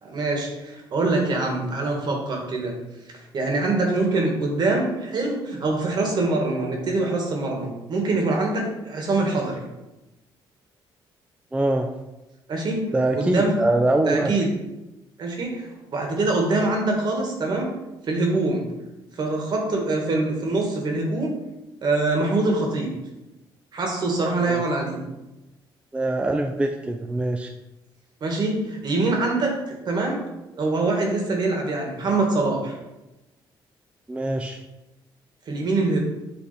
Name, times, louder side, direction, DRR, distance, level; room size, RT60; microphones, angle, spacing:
voice 1, 0.0-2.8 3.3-9.6 12.5-12.9 13.1-13.6 13.9-14.5 15.2-17.7 18.1-18.7 19.2-21.3 21.8-23.0 23.7-25.0 28.2-29.5 29.9-30.2 30.5-32.8 35.5-36.0, right 2 dB, 55° right, 1 dB, 1.7 m, -24 dB
voice 2, 11.5-11.9 12.9-14.3 24.5-24.6 25.9-27.5 34.1-34.6, right 2 dB, 15° right, 4 dB, 0.4 m, -23 dB
8.1 x 3.3 x 4.2 m, 0.99 s
cardioid pair, 100°, 9 cm